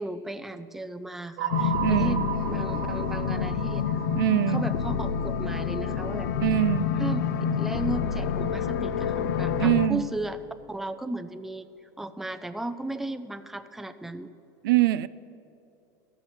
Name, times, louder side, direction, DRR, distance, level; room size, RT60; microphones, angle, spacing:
voice 1, 0.0-4.0 4.5-6.3 6.9-7.2 7.6-10.4 10.7-11.7 12.0-14.3, right 2 dB, 5° right, 9 dB, 0.4 m, -35 dB
sound 1, 1.4-5.6, right 9 dB, 65° right, 1.2 m, -35 dB
sound 2, 1.5-9.9, left 7 dB, 80° left, 0.6 m, -28 dB
voice 2, 1.8-2.2 4.2-4.6 6.4-6.9 9.6-10.0 14.6-15.1, right 14 dB, 85° right, 16 dB, 0.4 m, -23 dB
13.0 x 5.9 x 7.9 m, 2.8 s
supercardioid pair, 130°, 11 cm